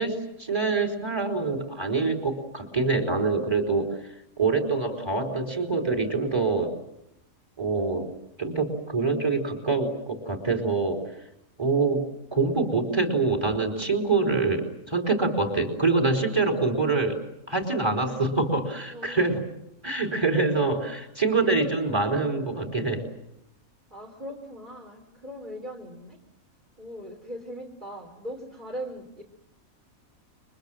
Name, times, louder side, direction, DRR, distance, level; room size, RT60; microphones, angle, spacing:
voice 1, 0.0-4.0 4.4-6.7 7.6-8.1 8.4-11.0 11.6-12.0 12.3-17.2 17.5-19.4 19.8-23.0, right 3 dB, 20° right, 6 dB, 4.3 m, -25 dB
voice 2, 18.9-19.4 23.9-26.2 26.8-29.2, equal, 35° right, 2 dB, 3.5 m, -39 dB
29.5 x 24.0 x 7.6 m, 0.81 s
omnidirectional pair, 1.4 m